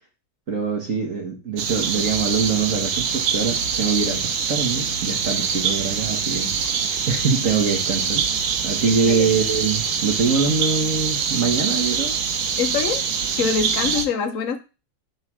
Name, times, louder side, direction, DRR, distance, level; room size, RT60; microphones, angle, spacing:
voice 1, 0.5-6.8 7.1-8.3 8.6-12.1, right 5 dB, 45° right, 0 dB, 1.5 m, -23 dB
sound 1, 1.6-14.1, right 6 dB, 70° right, 1.5 m, -24 dB
voice 2, 8.8-9.3 12.6-13.0 13.4-14.6, left 6 dB, 65° left, 8 dB, 0.8 m, -24 dB
7.6 x 3.3 x 6.1 m, 0.31 s
omnidirectional pair, 2.2 m